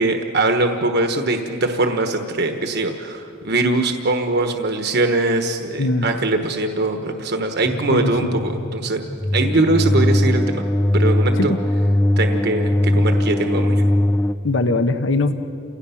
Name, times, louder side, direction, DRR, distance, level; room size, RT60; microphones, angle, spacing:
voice 1, 0.0-9.0 9.3-10.6 10.9-11.5 12.2-13.8, right 2 dB, 55° right, 5 dB, 1.2 m, -21 dB
voice 2, 5.8-6.1 7.9-8.4 11.4-11.6 14.4-15.3, left 2 dB, 65° left, 9 dB, 0.9 m, -21 dB
sound 1, 7.6-14.3, left 1 dB, 10° left, 0.4 m, -20 dB
29.5 x 17.5 x 5.8 m, 2.6 s
head